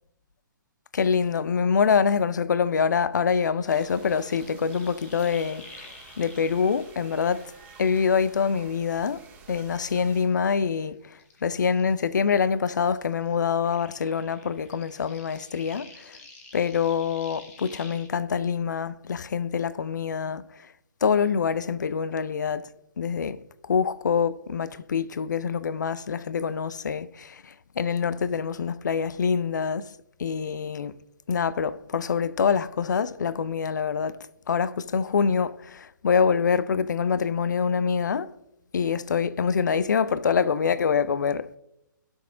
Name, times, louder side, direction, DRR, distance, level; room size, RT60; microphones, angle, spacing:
voice 1, 0.9-5.9 6.2-7.5 7.8-11.0 11.4-16.2 16.5-20.4 21.0-22.7 23.0-23.4 23.7-29.9 30.2-30.9 31.3-34.2 34.5-38.3 38.7-41.5, left 6 dB, 60° left, 0.4 m, -25 dB
sound 1, 3.2-8.7 9.1-12.4 12.7-18.1, left 3 dB, 40° left, 1.8 m, -50 dB
sound 2, 3.7-10.2, right 5 dB, 15° right, 1.7 m, -51 dB
16.5 x 6.2 x 2.4 m
figure-of-eight pair, 130°, 11 cm